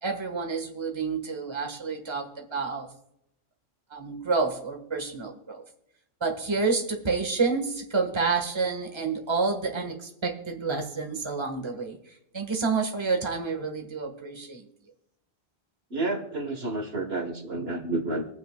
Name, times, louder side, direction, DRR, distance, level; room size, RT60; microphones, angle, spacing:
voice 1, 0.0-2.9 3.9-5.6 6.2-14.6, right 4 dB, 25° right, 3 dB, 1.5 m, -29 dB
voice 2, 15.9-18.2, right 2 dB, 60° right, 4 dB, 1.6 m, -30 dB
26.0 x 9.2 x 2.3 m, 0.79 s
omnidirectional pair, 1.2 m